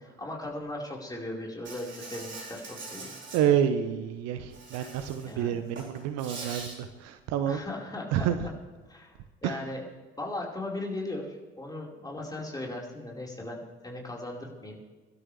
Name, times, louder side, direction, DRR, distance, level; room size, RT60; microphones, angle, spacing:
voice 1, 0.0-3.2 5.2-5.6 7.4-8.3 8.9-9.2 9.4-9.8 10.2-14.8, left 2 dB, 10° left, -3 dB, 4.9 m, -38 dB
Insect, 1.6-3.4 4.5-5.3 5.7-6.7, right 3 dB, 40° right, 4.3 m, -42 dB
voice 2, 3.3-7.6 8.1-8.4 9.4-9.6, right 9 dB, 55° right, 10 dB, 1.0 m, -28 dB
24.0 x 12.0 x 3.4 m, 1.3 s
figure-of-eight pair, 55°, 30 cm